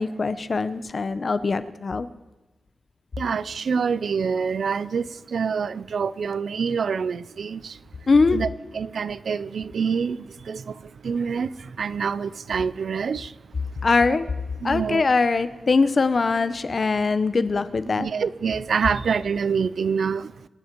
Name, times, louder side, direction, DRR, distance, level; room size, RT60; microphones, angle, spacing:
voice 1, 0.0-2.1 8.1-8.4 13.8-14.3 14.6-18.1, left 4 dB, 40° left, 0.7 m, -22 dB
voice 2, 3.2-7.8 8.3-8.5 8.7-13.9 14.6-15.0 18.0-20.5, right 6 dB, 65° right, 0.5 m, -26 dB
26.0 x 9.5 x 4.5 m
wide cardioid pair, 170°, 0 cm